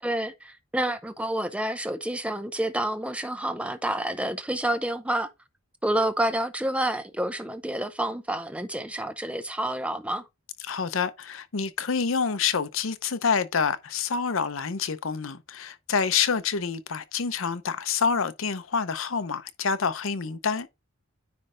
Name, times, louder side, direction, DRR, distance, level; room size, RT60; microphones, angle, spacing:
voice 1, 0.0-5.3 5.8-10.2, right 1 dB, 5° right, 0.6 m, -29 dB
voice 2, 10.6-20.7, left 6 dB, 70° left, 0.7 m, -27 dB
9.7 x 3.3 x 3.8 m
head